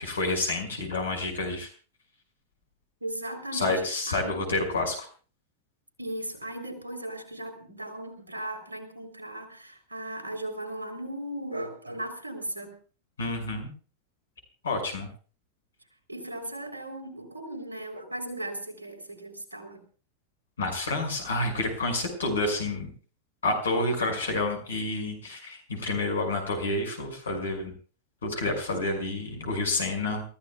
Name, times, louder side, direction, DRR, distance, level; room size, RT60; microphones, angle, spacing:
voice 1, 0.0-1.7 3.5-5.0 13.2-13.7 14.6-15.1 20.6-22.9 23.4-27.7 28.2-30.2, left 2 dB, 70° left, 4 dB, 5.8 m, -29 dB
voice 2, 3.0-3.8 4.1-4.6 6.0-12.7 16.1-19.8, right 1 dB, 80° right, 6 dB, 3.6 m, -37 dB
28.5 x 15.0 x 2.3 m, 0.39 s
figure-of-eight pair, 90°, 0 cm